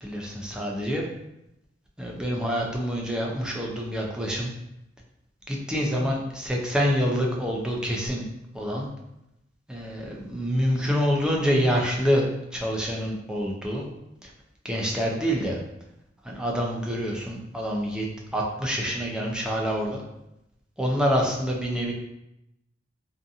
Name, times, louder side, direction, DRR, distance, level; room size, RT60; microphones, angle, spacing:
voice 1, 0.0-1.1 2.0-4.5 5.5-8.3 8.5-8.9 9.7-12.3 12.5-13.8 14.2-14.3 14.6-15.6 16.2-18.1 18.3-20.0 20.8-21.9, equal, 5° right, -2 dB, 0.4 m, -26 dB
2.6 x 2.5 x 2.4 m, 0.86 s
head